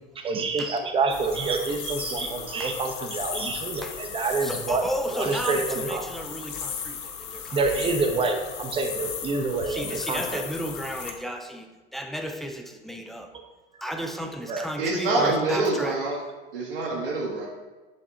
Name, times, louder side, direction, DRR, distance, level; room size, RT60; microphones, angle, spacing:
voice 1, 0.2-4.8 5.2-6.0 7.5-10.4 14.5-14.7, right 3 dB, 20° right, 4 dB, 0.8 m, -27 dB
sound 1, 1.1-11.1, left 7 dB, 45° left, 0.8 m, -36 dB
voice 2, 4.4-7.8 9.7-13.4 13.8-16.0, equal, ahead, 4 dB, 0.3 m, -34 dB
voice 3, 14.8-16.2 16.5-17.5, right 2 dB, 70° right, -4 dB, 1.3 m, -25 dB
7.8 x 3.5 x 4.5 m, 1.2 s
figure-of-eight pair, 80°, 29 cm